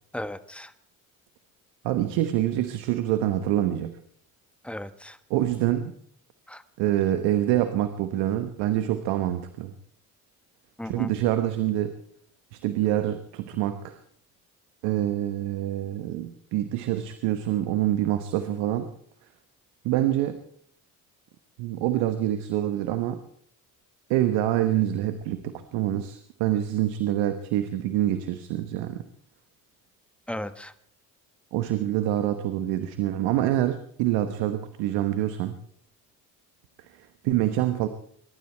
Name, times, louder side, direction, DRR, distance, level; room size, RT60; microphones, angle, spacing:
voice 1, 0.1-0.7 4.6-5.2 6.5-6.6 10.8-11.1 30.3-30.7, left 1 dB, 5° left, 12 dB, 1.3 m, -35 dB
voice 2, 1.8-4.0 5.3-5.9 6.8-9.7 10.8-12.0 12.5-14.0 14.8-18.9 19.8-20.4 21.6-23.2 24.1-29.0 31.5-35.5 36.9-37.9, right 13 dB, 80° right, 10 dB, 1.2 m, -26 dB
22.5 x 12.5 x 4.5 m, 0.64 s
hypercardioid pair, 60°, 41 cm